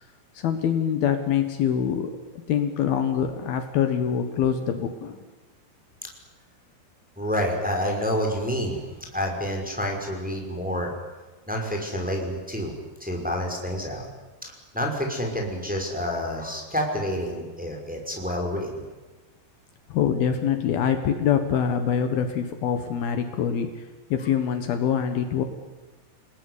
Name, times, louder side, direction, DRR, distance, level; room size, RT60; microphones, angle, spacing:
voice 1, 0.3-2.1 2.5-5.2 19.9-23.8 24.1-25.4, left 8 dB, 70° left, 7 dB, 3.3 m, -24 dB
voice 2, 7.2-10.9 11.5-12.7 13.0-14.1 14.4-18.8, equal, ahead, 1 dB, 5.4 m, -28 dB
29.5 x 19.5 x 9.9 m, 1.2 s
omnidirectional pair, 4.7 m